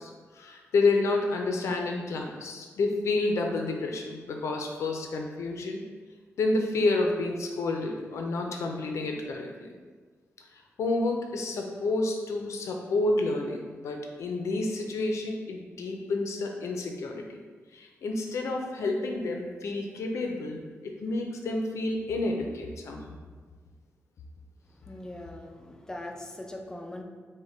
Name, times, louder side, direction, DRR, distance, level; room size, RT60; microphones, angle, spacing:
voice 1, 0.0-5.8 6.4-9.8 10.4-17.4 17.7-23.1, left 2 dB, 70° left, 2 dB, 0.4 m, -29 dB
voice 2, 24.8-27.0, left 1 dB, 10° left, 2 dB, 0.4 m, -41 dB
5.0 x 2.1 x 3.8 m, 1.5 s
wide cardioid pair, 150°, 5 cm